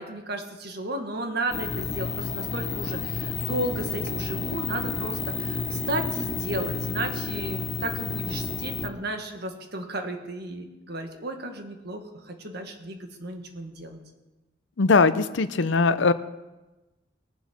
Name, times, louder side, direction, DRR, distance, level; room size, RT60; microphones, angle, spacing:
voice 1, 0.0-14.0, right 1 dB, 60° right, 5 dB, 1.7 m, -34 dB
sound 1, 1.5-8.9, left 5 dB, 40° left, 0.8 m, -31 dB
voice 2, 14.8-16.1, left 4 dB, 80° left, 13 dB, 0.7 m, -20 dB
21.0 x 7.2 x 6.0 m, 1.1 s
head